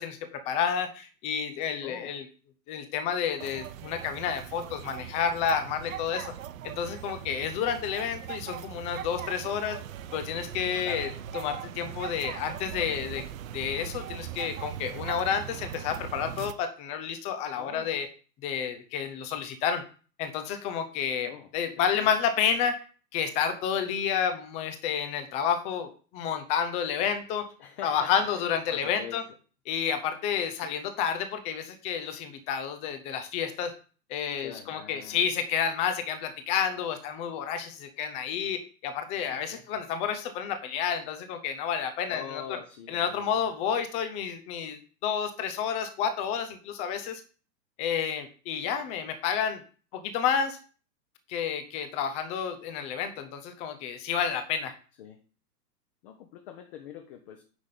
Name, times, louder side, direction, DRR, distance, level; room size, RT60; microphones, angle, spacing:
voice 1, 0.0-2.2 2.7-6.3 6.6-9.8 10.1-13.2 13.5-18.1 18.4-19.8 20.2-22.8 23.1-27.5 27.8-29.2 29.7-33.7 34.1-42.4 42.9-47.2 47.8-49.6 49.9-50.6 51.3-54.7, left 7 dB, 15° left, 8 dB, 0.6 m, -30 dB
voice 2, 1.8-2.1 10.8-11.1 17.6-17.9 21.3-21.5 22.0-22.1 27.6-29.2 34.4-35.3 39.3-39.6 42.1-43.5 55.0-55.2 56.0-57.4, left 9 dB, 35° left, 4 dB, 1.1 m, -43 dB
sound 1, 3.4-16.5, right 10 dB, 55° right, 0.8 m, -40 dB
9.7 x 3.8 x 6.6 m, 0.38 s
hypercardioid pair, 145°, 50 cm